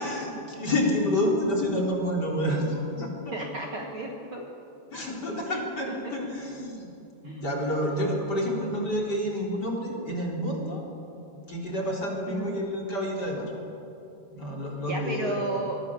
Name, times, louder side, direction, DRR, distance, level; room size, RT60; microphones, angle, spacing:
voice 1, 0.0-3.3 4.9-6.9 7.3-10.8 11.5-13.5 14.3-15.5, left 1 dB, 25° left, -1 dB, 3.6 m, -29 dB
voice 2, 3.3-4.4 5.5-6.1 7.2-7.9 12.3-12.6 14.8-15.8, right 2 dB, 85° right, 1 dB, 1.1 m, -34 dB
24.5 x 20.5 x 7.2 m, 2.8 s
omnidirectional pair, 5.1 m